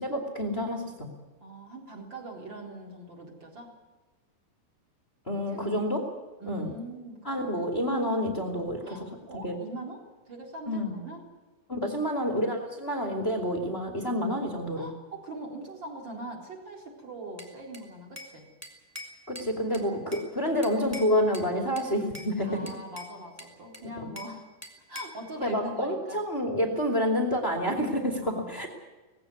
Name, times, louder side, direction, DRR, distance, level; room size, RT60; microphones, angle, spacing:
voice 1, 0.0-1.1 5.2-6.0 6.4-6.7 7.2-9.0 9.4-9.6 10.7-11.0 11.7-14.9 19.3-22.6 24.0-24.1 25.4-28.7, equal, 25° left, 4 dB, 1.4 m, -28 dB
voice 2, 1.4-3.7 5.5-5.8 6.4-7.7 8.8-11.2 11.9-12.4 14.7-18.5 22.4-24.5 24.9-26.2 28.2-28.7, right 1 dB, 25° right, 1 dB, 4.0 m, -42 dB
Bell / Glass, 17.4-18.4 18.6-20.3 20.6-21.5 21.8-22.3 22.7-24.4 24.6-25.2, left 1 dB, 5° right, 1.6 m, -44 dB
19.5 x 16.0 x 9.6 m, 1.2 s
omnidirectional pair, 5.6 m